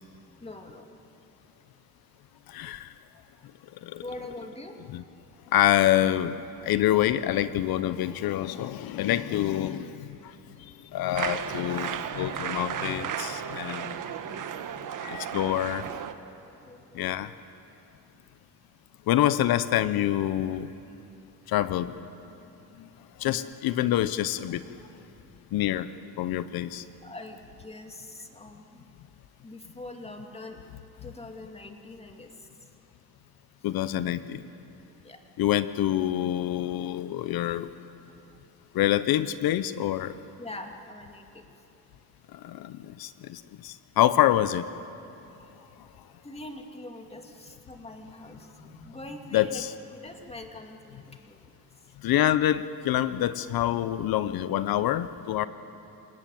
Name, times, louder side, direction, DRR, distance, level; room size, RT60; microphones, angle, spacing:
voice 1, 0.4-1.0 4.0-4.8 16.6-17.3 27.0-28.9 29.4-30.6 31.0-32.5 35.0-35.2 40.4-41.4 46.2-51.4, left 2 dB, 15° left, 4 dB, 2.6 m, -43 dB
voice 2, 2.5-2.9 3.9-4.0 4.9-5.0 5.5-6.4 6.6-9.9 10.9-13.9 15.0-15.8 17.0-17.3 19.1-20.7 21.5-21.9 23.2-24.6 25.5-25.9 26.2-26.8 33.6-34.4 35.4-37.7 38.7-40.2 42.4-42.7 43.0-44.6 49.3-49.7 52.0-55.4, left 13 dB, 75° left, 14 dB, 0.8 m, -26 dB
sound 1, 11.2-16.1, right 9 dB, 60° right, 1.4 m, -34 dB
28.5 x 18.5 x 9.4 m, 2.9 s
cardioid pair, 100°, 36 cm